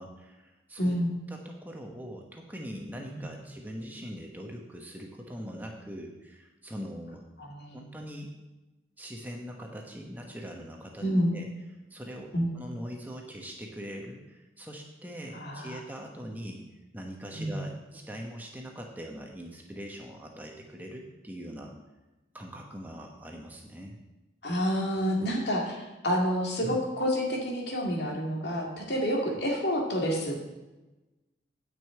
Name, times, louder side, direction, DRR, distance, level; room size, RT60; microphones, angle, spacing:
voice 1, 0.0-1.0 1.3-7.3 7.7-8.3 9.0-11.1 11.3-11.5 11.9-16.6 16.9-21.7 22.3-24.0 26.6-26.8 29.1-29.2, equal, 10° right, 1 dB, 1.1 m, -42 dB
voice 2, 0.8-1.2 3.1-3.3 7.4-7.8 11.0-11.3 12.3-12.5 15.3-15.8 17.3-17.6 24.4-30.4, equal, 60° left, -1 dB, 2.3 m, -29 dB
9.9 x 5.3 x 8.4 m, 1.1 s
head